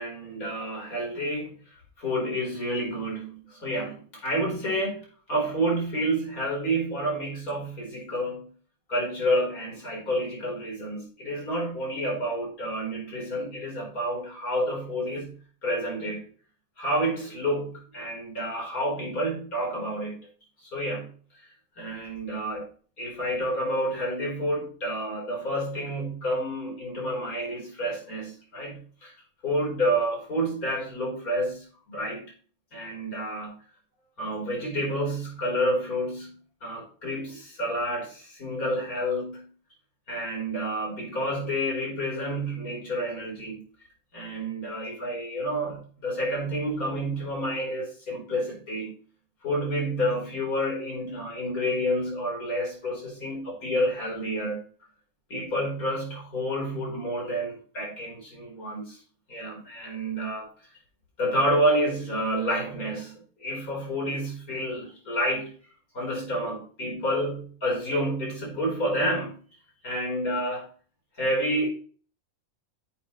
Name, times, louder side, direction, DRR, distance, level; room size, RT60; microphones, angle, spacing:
voice 1, 0.0-8.5 8.9-16.3 16.8-20.3 20.6-21.5 21.8-22.7 23.0-29.2 29.4-32.3 32.7-33.6 34.2-39.5 40.1-43.6 44.1-48.9 49.4-54.7 55.3-59.0 59.3-60.5 61.2-63.1 63.4-65.5 65.9-69.4 69.8-70.7 71.2-71.7, equal, 85° left, -1 dB, 4.8 m, -29 dB
9.8 x 8.4 x 3.1 m, 0.42 s
omnidirectional pair, 1.5 m